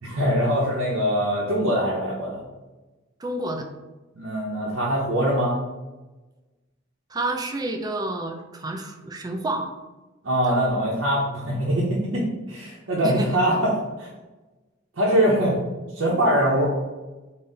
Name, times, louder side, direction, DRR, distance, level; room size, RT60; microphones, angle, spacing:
voice 1, 0.0-2.4 4.1-5.6 10.2-14.1 15.0-15.6 15.9-16.7, equal, 70° right, -6 dB, 0.7 m, -23 dB
voice 2, 3.2-3.7 7.1-9.7 13.0-13.3, right 2 dB, 20° right, 4 dB, 0.4 m, -29 dB
3.9 x 2.0 x 3.8 m, 1.1 s
head